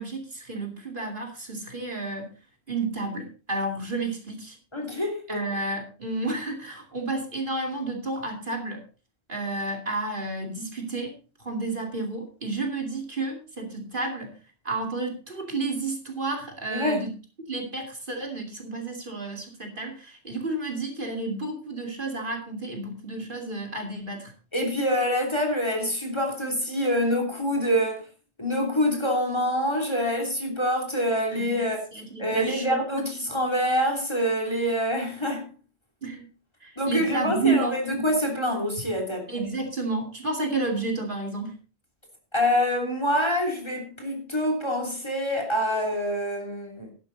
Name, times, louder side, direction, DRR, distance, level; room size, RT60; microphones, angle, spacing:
voice 1, 0.0-2.3 2.7-4.6 5.3-8.8 9.3-11.1 11.4-14.3 14.6-17.1 17.5-24.3 31.3-33.0 36.0-36.3 36.6-38.1 39.3-41.5, right 3 dB, 50° right, 2.8 m, -31 dB
voice 2, 4.7-5.4 16.7-17.1 24.5-28.0 28.4-31.8 32.2-35.5 36.8-39.2 42.3-46.9, equal, 25° left, 3.2 m, -26 dB
11.5 x 11.0 x 4.0 m
omnidirectional pair, 1.1 m